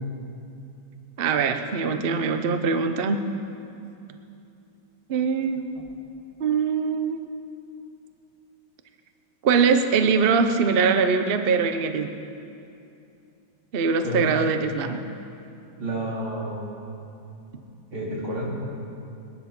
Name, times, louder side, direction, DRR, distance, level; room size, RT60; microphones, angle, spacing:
voice 1, 1.2-3.2 5.1-5.7 6.4-7.2 9.4-12.1 13.7-15.0, right 5 dB, 65° right, 8 dB, 0.5 m, -22 dB
voice 2, 14.0-14.4 15.8-16.7 17.9-18.6, right 1 dB, 85° right, -4 dB, 3.8 m, -30 dB
20.0 x 11.0 x 6.0 m, 2.7 s
omnidirectional pair, 2.2 m